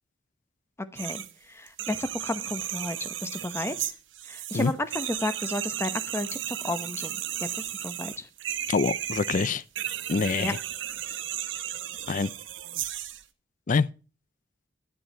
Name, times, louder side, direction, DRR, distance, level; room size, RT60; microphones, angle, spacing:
voice 1, 0.8-3.9 4.3-8.3 10.4-10.5, left 1 dB, 15° left, 0.9 m, -33 dB
sound 1, 1.0-1.3 1.7-13.2, right 11 dB, 75° right, 0.9 m, -34 dB
voice 2, 8.7-9.6 10.1-10.6 12.1-12.3 13.7-13.9, left 4 dB, 45° left, 0.4 m, -25 dB
11.0 x 7.7 x 4.3 m
head